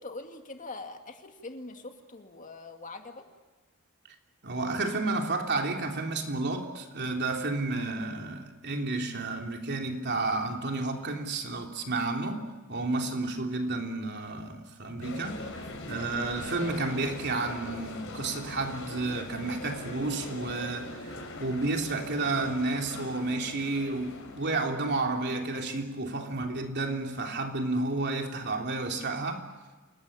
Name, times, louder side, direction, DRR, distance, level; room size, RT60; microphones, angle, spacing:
voice 1, 0.0-3.3, left 3 dB, 35° left, 2.3 m, -43 dB
voice 2, 4.4-29.5, right 3 dB, 50° right, 3.3 m, -31 dB
sound 1, 15.0-25.2, left 2 dB, 60° left, 5.4 m, -41 dB
28.5 x 20.0 x 8.9 m
head